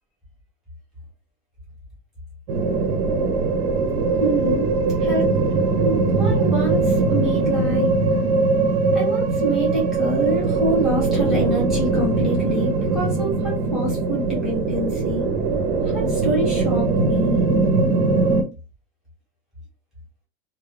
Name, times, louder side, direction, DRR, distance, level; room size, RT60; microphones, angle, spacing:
sound 1, 2.5-18.4, right 3 dB, 55° right, 0.6 m, -21 dB
voice 1, 4.2-4.7 5.0-5.5 5.8-7.9 8.9-15.2 15.8-17.4, right 1 dB, ahead, -6 dB, 0.7 m, -26 dB
2.3 x 2.1 x 3.1 m, 0.30 s
supercardioid pair, 175°, 44 cm